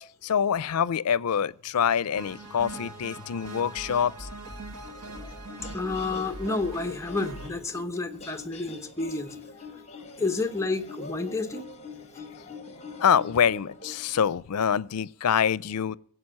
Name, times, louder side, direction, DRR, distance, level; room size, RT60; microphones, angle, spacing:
voice 1, 0.2-4.3 13.0-16.0, left 7 dB, 90° left, 0.5 m, -25 dB
sound 1, 2.2-7.5, right 2 dB, 75° right, 2.0 m, -41 dB
sound 2, 4.8-14.3, left 4 dB, 30° left, 1.6 m, -44 dB
voice 2, 5.7-9.4 10.2-11.7 12.2-12.3, left 3 dB, 15° left, 1.0 m, -30 dB
17.5 x 7.7 x 7.5 m
head